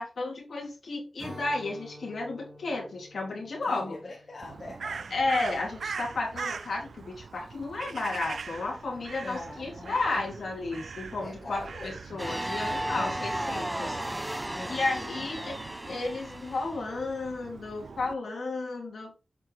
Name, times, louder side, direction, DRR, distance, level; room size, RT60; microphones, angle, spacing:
voice 1, 0.0-4.0 5.1-14.0 14.7-15.5 15.9-19.1, left 3 dB, 85° left, 2.7 m, -33 dB
Strum, 1.2-6.6, equal, 45° right, 3.7 m, -50 dB
voice 2, 3.6-5.1 9.2-10.3 11.2-12.3 12.9-13.5 14.5-14.8 15.1-15.6, left 2 dB, 55° left, 1.7 m, -43 dB
Crow, 4.4-18.1, right 5 dB, 85° right, 0.4 m, -42 dB
sound 1, 12.2-16.9, right 1 dB, 10° right, 0.3 m, -34 dB
7.5 x 4.7 x 3.5 m
wide cardioid pair, 90°, 0 cm